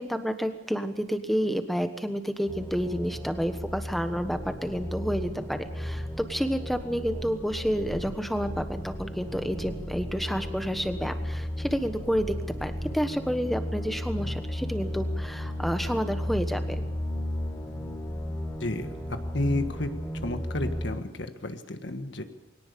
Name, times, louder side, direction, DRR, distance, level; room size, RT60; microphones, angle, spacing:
voice 1, 0.0-12.3 12.6-16.6, equal, ahead, 8 dB, 1.3 m, -29 dB
sound 1, 2.5-21.0, left 1 dB, 15° left, 3.8 m, -34 dB
voice 2, 18.6-19.9 20.2-22.2, left 2 dB, 60° left, 8 dB, 1.6 m, -32 dB
22.5 x 18.0 x 6.9 m, 0.98 s
head